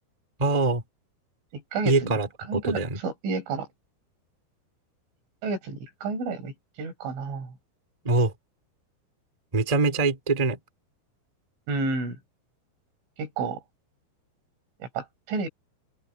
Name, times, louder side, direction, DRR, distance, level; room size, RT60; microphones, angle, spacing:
voice 1, 0.4-0.8 1.8-3.0 8.0-8.3 9.5-10.6, right 3 dB, 15° right, 1.4 m, -24 dB
voice 2, 1.5-2.2 2.5-3.7 5.4-7.6 11.7-12.2 13.2-13.6 14.8-15.5, right 3 dB, 80° right, 8.0 m, -31 dB
open air
omnidirectional pair, 5.5 m